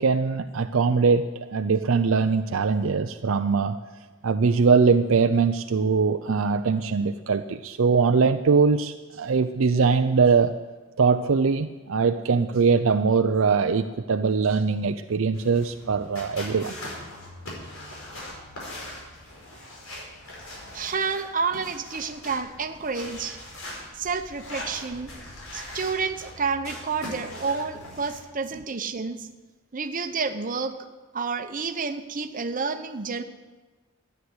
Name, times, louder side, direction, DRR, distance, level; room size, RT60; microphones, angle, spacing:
voice 1, 0.0-3.8 4.2-10.6 11.0-16.7, right 5 dB, 65° right, 8 dB, 0.5 m, -22 dB
sound 1, 15.3-28.2, left 1 dB, 70° left, 5.2 m, -41 dB
voice 2, 20.7-23.4 23.9-25.1 25.5-29.3 29.7-30.8 31.1-33.2, right 5 dB, 40° right, 8 dB, 0.9 m, -29 dB
13.0 x 9.6 x 8.0 m, 1.3 s
head